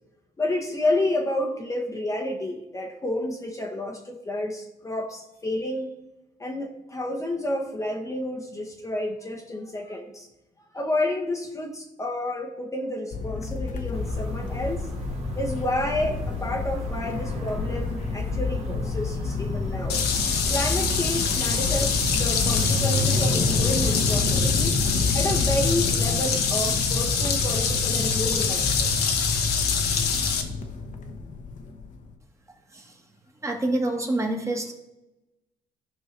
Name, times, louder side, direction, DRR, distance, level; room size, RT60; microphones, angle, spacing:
voice 1, 0.4-5.9 6.4-10.3 10.7-14.9 15.3-20.0 20.5-24.8 25.1-28.9, left 1 dB, 20° left, 1 dB, 0.9 m, -30 dB
sound 1, 13.1-32.1, left 3 dB, 50° left, 1.0 m, -28 dB
sound 2, 13.9-24.4, right 1 dB, 40° right, 1.3 m, -38 dB
sound 3, 19.9-30.4, left 6 dB, 70° left, 1.1 m, -25 dB
voice 2, 33.4-34.7, right 2 dB, 15° right, 2 dB, 1.4 m, -27 dB
13.5 x 5.4 x 3.2 m, 0.97 s
cardioid pair, 110°, 17 cm